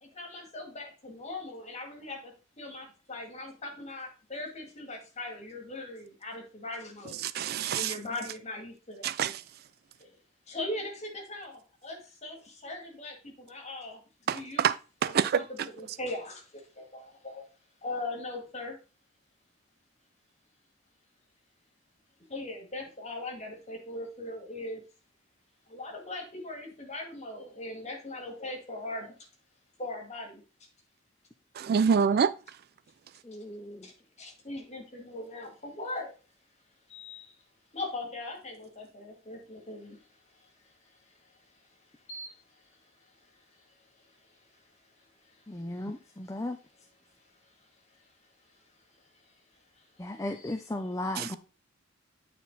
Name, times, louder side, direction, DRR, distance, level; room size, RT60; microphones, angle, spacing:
voice 1, 0.0-9.1 10.0-10.1 10.5-14.0 14.3-14.7 15.0-17.4 17.8-18.8 22.3-24.8 25.7-29.1 29.8-30.4 33.8-33.9 34.2-36.1 36.9-37.3 37.7-40.0 40.3-41.3 42.1-44.4 45.2-45.4 45.9-46.0 48.0-48.1 49.8-49.9 50.3-50.6, left 2 dB, 35° left, 2.2 m, -40 dB
voice 2, 7.2-7.9 9.0-9.4 14.3-14.8 15.0-15.4 31.6-32.3 51.2-51.3, right 7 dB, 50° right, 0.3 m, -26 dB
voice 3, 33.2-33.9 45.5-46.6 50.0-51.4, left 1 dB, 15° left, 0.5 m, -36 dB
9.2 x 4.3 x 4.1 m
head